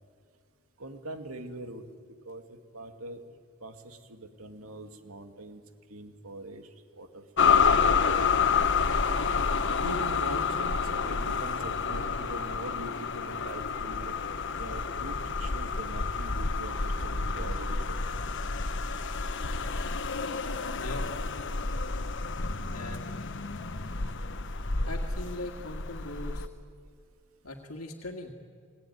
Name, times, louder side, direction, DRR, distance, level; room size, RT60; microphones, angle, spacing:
voice 1, 0.8-1.9 2.2-3.2 3.6-5.6 5.9-6.7 7.0-8.3 9.8-14.2 14.6-18.0, right 1 dB, 80° right, 7 dB, 2.4 m, -42 dB
sound 1, 7.4-26.5, left 5 dB, 60° left, 1.2 m, -29 dB
voice 2, 20.8-21.2 22.7-23.2 23.9-24.0 24.8-26.5 27.4-28.3, left 1 dB, 85° left, 3 dB, 2.1 m, -40 dB
29.0 x 20.0 x 9.5 m, 2.1 s
head